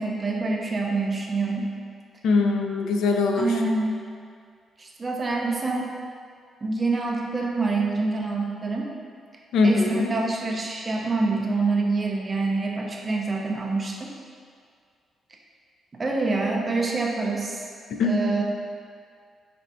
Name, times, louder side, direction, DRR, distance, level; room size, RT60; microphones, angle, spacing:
voice 1, 0.0-1.7 3.4-3.9 4.8-5.9 6.6-8.9 9.6-14.1 16.0-17.6 18.0-18.4, right 3 dB, 20° right, -1 dB, 0.4 m, -26 dB
voice 2, 2.2-3.5 9.5-10.1 17.9-18.2, left 3 dB, 75° left, 3 dB, 0.3 m, -22 dB
3.3 x 2.5 x 4.2 m, 2.1 s
cardioid pair, 175°, 0 cm